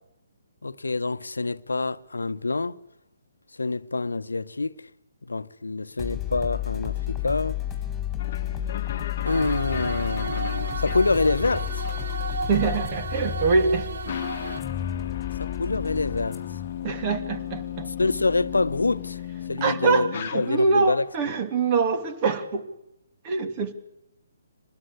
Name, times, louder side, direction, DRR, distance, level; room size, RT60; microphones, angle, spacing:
voice 1, 0.6-2.8 3.5-4.9 5.2-7.6 9.2-11.9 15.4-16.4 18.0-19.2 19.5-21.0, left 3 dB, 80° left, 1.0 m, -26 dB
sound 1, 6.0-19.4, left 12 dB, 10° left, 4.4 m, -33 dB
sound 2, 8.2-20.9, left 10 dB, 45° left, 1.3 m, -37 dB
sound 3, 9.2-14.6, right 4 dB, 60° right, 1.6 m, -34 dB
voice 2, 12.5-13.9 16.8-17.9 19.6-22.7 23.2-23.7, right 4 dB, 30° right, 2.8 m, -24 dB
25.5 x 20.0 x 8.3 m
figure-of-eight pair, 135°, 0 cm